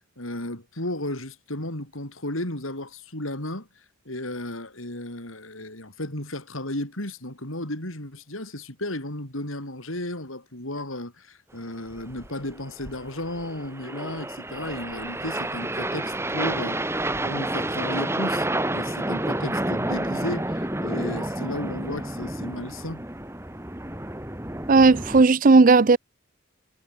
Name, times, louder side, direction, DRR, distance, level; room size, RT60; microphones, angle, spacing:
voice 1, 0.2-23.0, left 1 dB, 85° left, 7.9 m, -34 dB
sound 1, 11.9-25.2, right 1 dB, 15° right, 2.1 m, -30 dB
voice 2, 24.7-26.0, right 3 dB, 40° right, 0.5 m, -15 dB
head